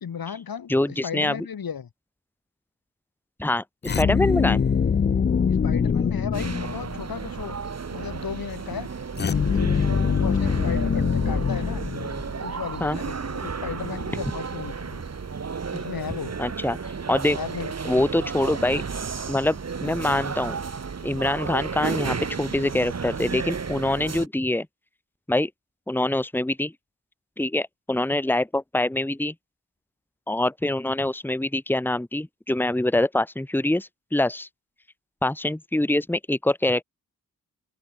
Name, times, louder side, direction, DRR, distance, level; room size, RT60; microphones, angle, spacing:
voice 1, 0.0-1.9 5.5-7.6 7.9-11.9 12.4-15.0 15.7-16.4 17.3-18.0, left 7 dB, 75° left, 2.1 m, -35 dB
voice 2, 0.7-1.3 3.4-4.6 12.8-13.0 16.4-17.4 17.9-18.8 19.3-20.6 21.0-24.7 25.3-25.5 25.9-26.7 27.4-29.3 30.3-34.5 35.2-36.8, left 1 dB, 5° left, 1.4 m, -24 dB
sound 1, 3.8-7.2 9.2-12.5, left 6 dB, 30° left, 0.4 m, -23 dB
sound 2, 6.3-24.3, right 5 dB, 45° right, 1.7 m, -33 dB
wide cardioid pair, 80°, 35 cm